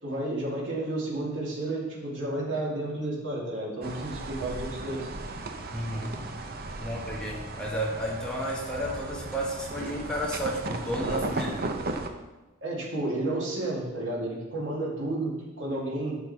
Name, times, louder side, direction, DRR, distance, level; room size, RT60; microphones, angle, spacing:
voice 1, 0.0-5.1 12.6-16.2, right 2 dB, 65° right, -6 dB, 3.0 m, -31 dB
sound 1, 3.8-12.1, right 2 dB, 45° right, 0.7 m, -36 dB
voice 2, 5.6-6.2 6.8-11.6, equal, 5° left, -4 dB, 1.6 m, -32 dB
12.5 x 6.0 x 3.4 m, 1.1 s
head